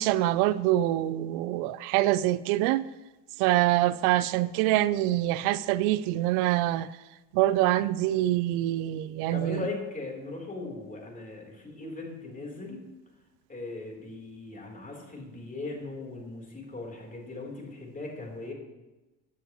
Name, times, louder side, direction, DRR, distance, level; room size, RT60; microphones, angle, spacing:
voice 1, 0.0-2.9 3.4-6.9 7.3-9.6, right 15 dB, 80° right, 0.5 m, -25 dB
voice 2, 9.3-12.8 13.5-18.5, left 3 dB, 20° left, 3.8 m, -38 dB
16.0 x 9.7 x 3.1 m
supercardioid pair, 100°, 38 cm